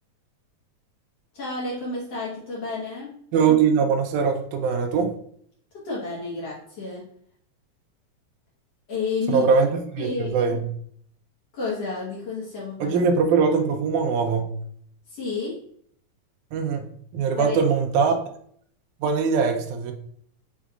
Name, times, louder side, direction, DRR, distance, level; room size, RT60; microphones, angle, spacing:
voice 1, 1.3-3.2 5.8-7.1 8.9-9.5 10.0-10.3 11.5-13.0 15.1-15.6 17.4-17.6, left 3 dB, 55° left, -6 dB, 2.0 m, -30 dB
voice 2, 3.3-5.1 9.3-10.7 12.8-14.6 16.5-18.2 19.0-19.9, right 5 dB, 85° right, 4 dB, 1.8 m, -22 dB
6.1 x 3.5 x 2.4 m, 0.63 s
omnidirectional pair, 4.0 m